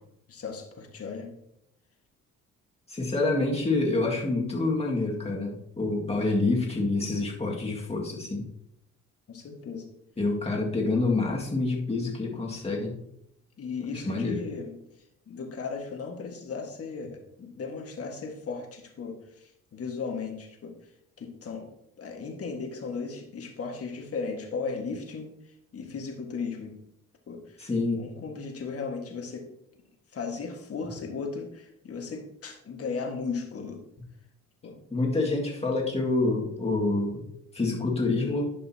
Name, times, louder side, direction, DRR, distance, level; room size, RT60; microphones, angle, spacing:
voice 1, 0.3-1.3 9.3-9.9 13.6-14.8 15.3-20.7 21.2-21.7 22.0-25.3 25.7-26.8 27.3-27.6 28.0-29.5 30.1-33.8 34.6-34.8, left 5 dB, 50° left, 3 dB, 1.7 m, -36 dB
voice 2, 2.9-8.4 10.2-12.9 14.0-14.4 27.6-28.1 34.9-37.2 37.5-38.5, left 2 dB, 20° left, -2 dB, 2.0 m, -27 dB
11.5 x 5.4 x 2.9 m, 0.79 s
cardioid pair, 90°, 30 cm